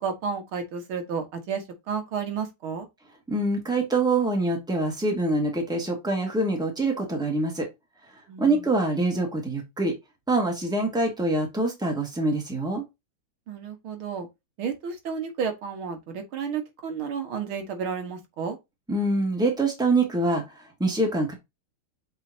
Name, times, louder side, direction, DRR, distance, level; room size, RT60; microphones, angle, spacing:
voice 1, 0.0-2.9 8.3-8.7 13.5-14.3 14.6-18.6, right 6 dB, 75° right, 2.3 m, -32 dB
voice 2, 3.3-7.7 8.4-9.9 10.3-12.8 18.9-20.4 20.8-21.3, right 2 dB, ahead, 2.0 m, -25 dB
7.5 x 5.0 x 2.8 m
omnidirectional pair, 2.3 m